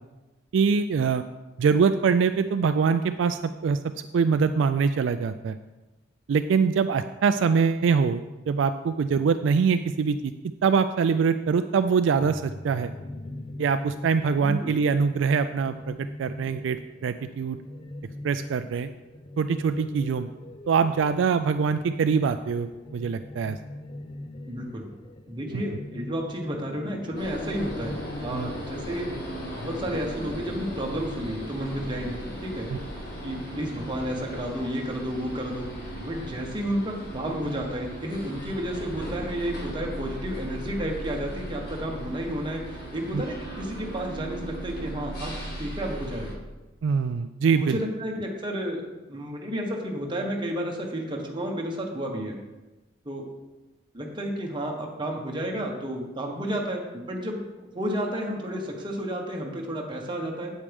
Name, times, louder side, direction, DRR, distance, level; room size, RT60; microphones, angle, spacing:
voice 1, 0.5-1.2 1.6-3.8 4.1-5.6 6.3-10.3 10.6-12.9 13.6-17.6 18.2-18.9 19.4-20.3 20.7-23.6 25.5-25.6 28.3-28.5 32.7-32.8 43.1-43.2 46.8-47.8, right 5 dB, 70° right, 10 dB, 0.3 m, -24 dB
sound 1, 12.2-28.0, left 1 dB, 25° left, 0.4 m, -41 dB
voice 2, 14.4-14.7 24.5-24.9 25.3-28.0 28.2-29.1 29.5-32.7 33.2-35.7 36.0-46.4 47.5-48.8 49.1-52.4 53.0-53.2 53.9-60.5, equal, 25° right, 0 dB, 1.2 m, -31 dB
sound 2, 27.2-46.3, equal, 55° left, 1.9 m, -37 dB
8.4 x 8.3 x 3.5 m, 1.1 s
head